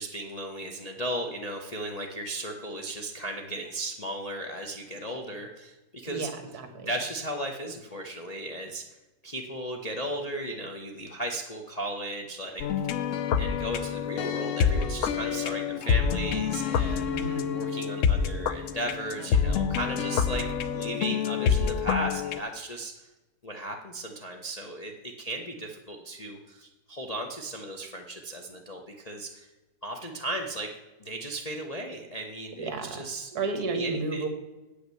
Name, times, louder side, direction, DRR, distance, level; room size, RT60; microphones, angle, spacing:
voice 1, 0.0-6.3 6.8-9.0 9.2-12.6 13.0-13.1 13.4-23.1 23.4-29.5 29.8-30.7 31.0-33.3 33.7-34.3, right 1 dB, 35° left, 1 dB, 0.6 m, -36 dB
voice 2, 6.1-6.9 17.1-17.5 32.6-33.0 33.3-34.3, right 3 dB, 65° right, 7 dB, 1.6 m, -32 dB
sound 1, 12.6-22.4, left 7 dB, 70° left, 0.8 m, -27 dB
8.2 x 5.7 x 7.7 m, 1.1 s
omnidirectional pair, 1.8 m